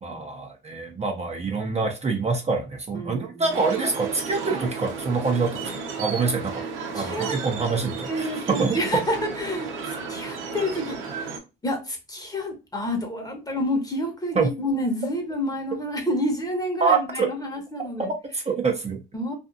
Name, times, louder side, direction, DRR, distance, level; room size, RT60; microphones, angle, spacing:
voice 1, 0.0-5.7 6.0-6.6 6.9-8.8 14.3-14.5 16.8-17.3 18.0-19.0, right 4 dB, 35° right, 0.7 m, -25 dB
voice 2, 2.9-3.6 6.9-7.3 8.1-11.0 11.6-18.1 19.1-19.3, left 1 dB, 20° left, 1.0 m, -29 dB
sound 1, 3.5-11.4, right 5 dB, 90° right, 0.8 m, -33 dB
2.6 x 2.4 x 2.5 m
cardioid pair, 90°, 20 cm